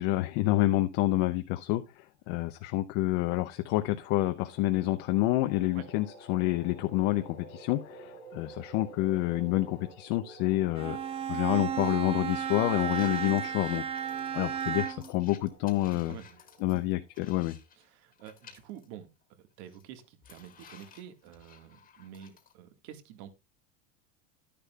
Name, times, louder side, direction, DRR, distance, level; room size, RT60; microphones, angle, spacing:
voice 1, 0.0-11.0 11.3-13.8 14.3-16.2 16.6-17.6, left 16 dB, 50° left, 0.7 m, -28 dB
sound 1, 2.9-17.5, right 2 dB, 85° left, 3.5 m, -52 dB
Bowed string instrument, 10.7-15.2, right 8 dB, 15° right, 0.6 m, -33 dB
sound 2, 10.8-11.1 11.6-11.7 12.3-17.9 18.1-18.9 19.2-19.3 19.7-22.5, left 7 dB, 20° left, 1.7 m, -55 dB
voice 2, 15.9-16.4 16.7-16.9 17.8-19.1 19.4-23.3, right 10 dB, 60° right, 1.8 m, -48 dB
11.0 x 10.5 x 2.3 m
supercardioid pair, 155°, 37 cm